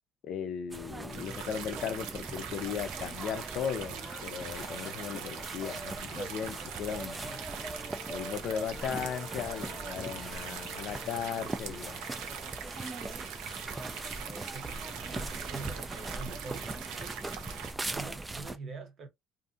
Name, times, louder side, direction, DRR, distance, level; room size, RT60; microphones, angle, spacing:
voice 1, 0.2-7.4 8.1-12.0, left 8 dB, 55° left, 0.5 m, -37 dB
sound 1, 0.7-18.6, right 2 dB, 15° right, 0.3 m, -41 dB
sound 2, 0.9-1.0 1.4-14.4, left 2 dB, 5° left, 0.8 m, -52 dB
sound 3, 1.1-17.7, right 8 dB, 85° right, 0.6 m, -42 dB
voice 2, 14.2-17.3 17.9-19.1, right 4 dB, 40° right, 0.8 m, -45 dB
2.6 x 2.5 x 2.5 m
cardioid pair, 140°, 0 cm